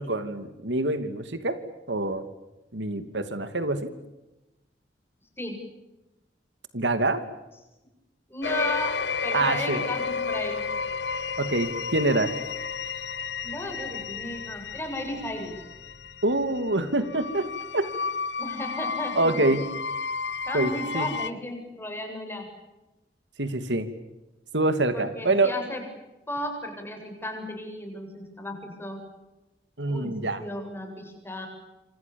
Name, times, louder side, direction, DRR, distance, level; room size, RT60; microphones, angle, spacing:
voice 1, 0.0-1.6 1.9-2.2 2.7-3.9 6.7-7.2 9.3-9.8 11.4-12.3 16.2-17.9 19.2-19.6 20.5-21.1 23.4-23.9 24.5-25.5 29.8-30.4, right 2 dB, 85° right, 10 dB, 2.8 m, -25 dB
voice 2, 8.3-9.0 9.2-10.6 13.4-15.7 18.4-19.5 20.5-22.5 24.9-25.8 26.3-29.0 29.9-31.5, left 1 dB, 15° left, 4 dB, 7.8 m, -34 dB
sound 1, 8.4-21.3, left 5 dB, 70° left, 1.2 m, -32 dB
27.5 x 26.5 x 7.2 m, 1.0 s
head